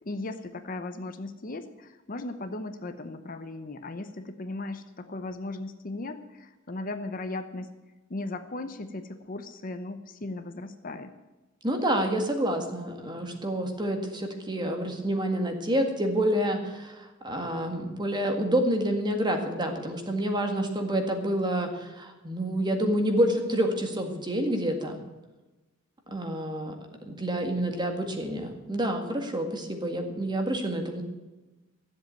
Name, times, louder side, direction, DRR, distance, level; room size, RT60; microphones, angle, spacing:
voice 1, 0.0-7.7 8.1-11.1, left 2 dB, 45° left, 9 dB, 0.8 m, -37 dB
voice 2, 11.6-25.0 26.1-26.7 27.1-31.0, right 1 dB, 20° right, 4 dB, 1.9 m, -28 dB
14.0 x 7.7 x 9.1 m, 1.1 s
head